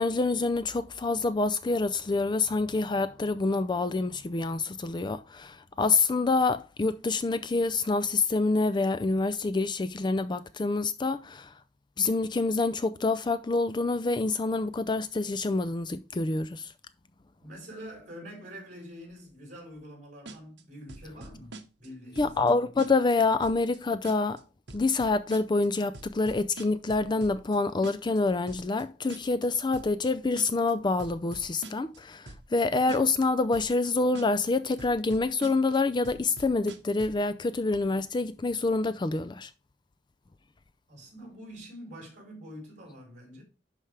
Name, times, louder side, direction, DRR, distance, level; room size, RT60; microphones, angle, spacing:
voice 1, 0.0-11.6 12.0-16.7 22.2-24.4 24.7-39.5, left 3 dB, 25° left, 0.4 m, -27 dB
voice 2, 17.4-22.4 40.9-43.4, equal, 45° right, 4.9 m, -45 dB
sound 1, 20.3-20.6 20.9-21.9 22.1-22.5 22.8-23.1 23.4-23.8 24.0-24.4 24.7-25.7 25.9-27.6 27.8-28.2 28.5-28.8 29.1-29.5 29.7-30.1 30.4-30.7 31.0-32.0 32.3-32.6 32.9-33.2 33.5-33.9 34.1-34.5 34.8-35.8 36.0-37.2, right 2 dB, 70° right, 1.1 m, -44 dB
11.0 x 4.9 x 3.3 m
head